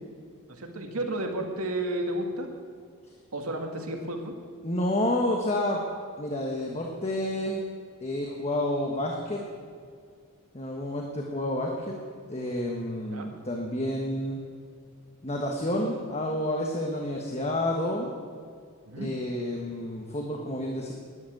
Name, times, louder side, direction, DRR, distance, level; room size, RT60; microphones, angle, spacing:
voice 1, 0.5-2.5 3.3-4.3 13.1-13.3 18.9-19.1, right 1 dB, 80° right, 3 dB, 2.1 m, -32 dB
voice 2, 4.6-5.8 6.2-7.6 8.0-9.4 10.5-11.9 12.3-14.4 15.2-18.1 19.0-20.9, left 1 dB, 30° left, 0 dB, 1.3 m, -29 dB
11.5 x 10.5 x 9.2 m, 2.1 s
head